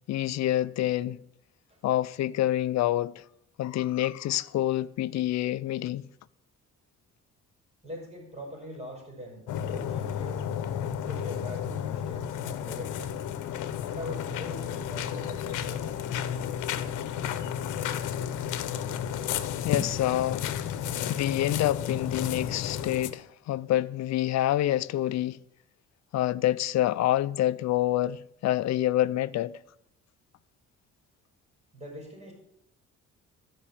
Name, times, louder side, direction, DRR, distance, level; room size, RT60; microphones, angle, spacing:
voice 1, 0.1-1.2 1.8-3.2 3.6-6.1 19.6-20.5 21.1-25.4 26.1-29.6, left 13 dB, 60° left, 0.5 m, -27 dB
voice 2, 7.8-10.4 11.0-13.2 13.8-15.9 31.7-32.3, equal, 20° right, 5.3 m, -42 dB
sound 1, 9.5-23.1, left 9 dB, 80° left, 0.9 m, -32 dB
13.5 x 5.3 x 7.3 m
cardioid pair, 90°, 30 cm